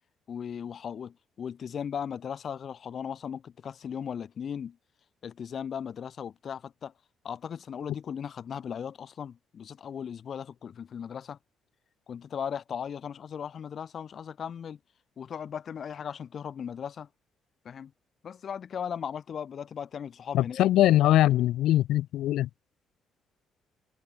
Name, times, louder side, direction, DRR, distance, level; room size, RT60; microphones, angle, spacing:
voice 1, 0.3-4.8 5.2-6.9 7.2-11.4 12.1-14.8 15.2-17.1 17.6-17.9 18.2-20.7, left 8 dB, 55° left, 1.2 m, -37 dB
voice 2, 20.3-22.5, left 14 dB, 85° left, 0.4 m, -22 dB
cardioid pair, 90°, 0 cm